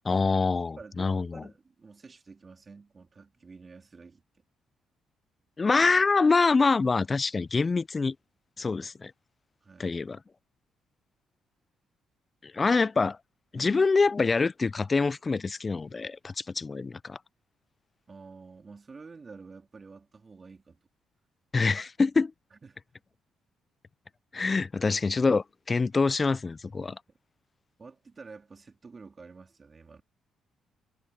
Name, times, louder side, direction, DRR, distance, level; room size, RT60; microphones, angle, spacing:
voice 1, 0.0-1.4 5.6-8.2 8.6-9.1 9.8-10.2 12.4-13.2 13.5-17.2 21.5-22.3 24.3-27.0, left 4 dB, 30° left, 0.3 m, -25 dB
voice 2, 0.8-4.2 9.6-9.9 13.5-13.8 18.1-20.8 22.5-22.8 27.8-30.0, right 4 dB, 35° right, 3.4 m, -49 dB
cardioid pair, 90°, 0 cm